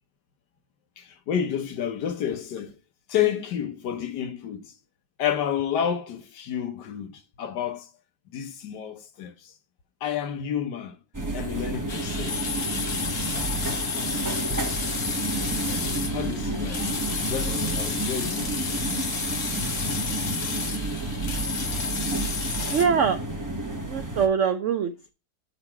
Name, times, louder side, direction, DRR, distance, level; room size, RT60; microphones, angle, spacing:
voice 1, 1.0-2.8 3.1-4.7 5.2-7.9 8.3-9.5 10.0-11.0 11.3-12.5 16.1-16.9 17.2-18.7, left 9 dB, 70° left, 1.5 m, -30 dB
sound 1, 11.1-24.3, right 2 dB, 15° right, 0.7 m, -30 dB
sound 2, 11.9-22.9, left 5 dB, 45° left, 1.4 m, -31 dB
voice 2, 20.9-21.4 22.7-23.2 23.8-25.1, right 6 dB, 90° right, 0.6 m, -24 dB
8.0 x 4.0 x 4.4 m
omnidirectional pair, 2.0 m